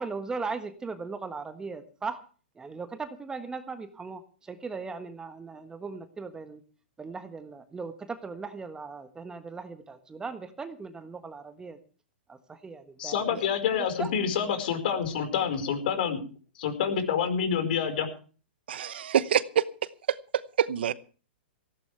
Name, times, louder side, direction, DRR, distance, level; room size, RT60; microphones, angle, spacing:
voice 1, 0.0-2.2 2.6-4.2 4.5-6.6 7.0-11.8 12.3-13.4 14.0-14.1, right 4 dB, 10° right, 9 dB, 1.4 m, -38 dB
voice 2, 13.0-16.2 16.6-18.1, left 7 dB, 60° left, 8 dB, 4.7 m, -27 dB
voice 3, 18.7-19.6 20.1-20.2 20.6-20.9, right 9 dB, 70° right, 16 dB, 0.9 m, -25 dB
18.5 x 16.0 x 3.3 m, 0.38 s
hypercardioid pair, 125°, 6 cm